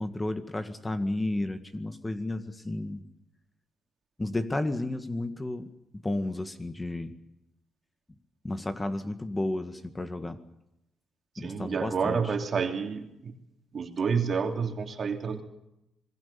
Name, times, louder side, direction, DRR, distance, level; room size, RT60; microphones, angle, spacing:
voice 1, 0.0-3.0 4.2-5.7 6.0-7.1 8.4-10.4 11.4-12.3, left 2 dB, 15° left, 9 dB, 1.9 m, -32 dB
voice 2, 11.3-13.3 13.7-15.4, right 5 dB, 45° right, 4 dB, 3.2 m, -29 dB
27.0 x 21.0 x 7.1 m, 0.88 s
cardioid pair, 90°, 0 cm